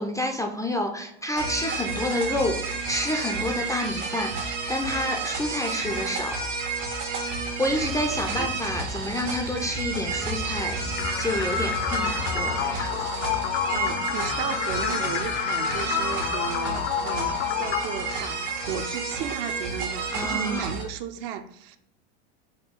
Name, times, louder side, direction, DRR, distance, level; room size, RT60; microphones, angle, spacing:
voice 1, 0.0-6.4 7.6-13.1 20.1-20.7, left 1 dB, 10° left, 0.3 m, -29 dB
sound 1, 1.4-20.8, right 4 dB, 85° right, 1.3 m, -31 dB
sound 2, 7.6-12.7, left 4 dB, 85° left, 1.3 m, -38 dB
voice 2, 8.1-8.5 13.7-21.8, right 8 dB, 55° right, 0.5 m, -35 dB
sound 3, 11.0-18.9, left 9 dB, 65° left, 0.6 m, -29 dB
5.1 x 2.3 x 3.5 m
hypercardioid pair, 95°, 36 cm